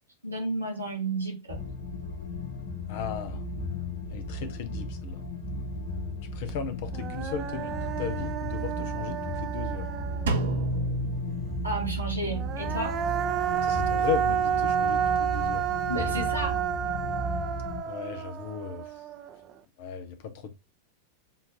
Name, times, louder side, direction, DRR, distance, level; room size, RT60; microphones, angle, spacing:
voice 1, 0.2-1.6 11.6-13.0 15.9-16.6, right 2 dB, 85° right, 1.4 m, -32 dB
sound 1, 1.5-17.8, equal, 75° left, 1.4 m, -35 dB
voice 2, 2.9-3.4 4.1-5.2 6.3-9.8 13.5-15.6 17.9-18.9 19.8-20.5, left 7 dB, 50° left, 0.6 m, -36 dB
Human voice, 6.5-6.6 6.9-10.6 12.3-19.5, right 9 dB, 30° right, 0.6 m, -30 dB
Drum, 10.3-12.2, right 1 dB, 65° right, 0.8 m, -30 dB
7.1 x 2.5 x 2.8 m
figure-of-eight pair, 90°, 0 cm